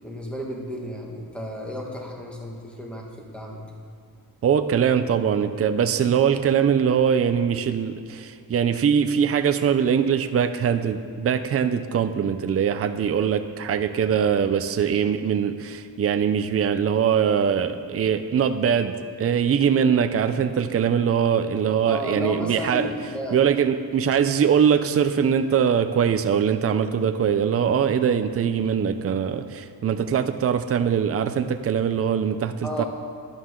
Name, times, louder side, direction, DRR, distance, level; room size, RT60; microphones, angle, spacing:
voice 1, 0.0-3.7 21.8-23.4 32.6-32.8, equal, 5° left, -1 dB, 1.8 m, -33 dB
voice 2, 4.4-22.9 23.3-32.8, right 7 dB, 40° right, 8 dB, 0.5 m, -22 dB
14.5 x 11.5 x 3.8 m, 2.4 s
wide cardioid pair, 145°, 38 cm